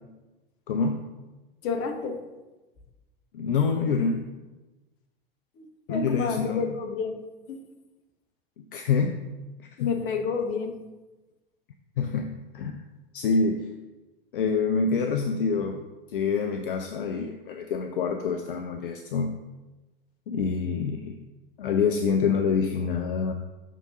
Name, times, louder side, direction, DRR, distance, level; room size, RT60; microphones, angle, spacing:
voice 1, 0.7-1.0 3.3-4.3 5.9-6.6 8.6-9.2 9.8-9.9 12.0-12.8 13.1-13.7 14.3-15.8 16.1-19.3 20.3-21.2 21.6-23.3, left 5 dB, 65° left, 5 dB, 0.6 m, -26 dB
voice 2, 1.6-2.2 5.6-7.2 7.5-7.6 9.8-10.8, left 5 dB, 45° left, 5 dB, 1.0 m, -30 dB
6.4 x 3.7 x 5.2 m, 1.1 s
figure-of-eight pair, 85°, 29 cm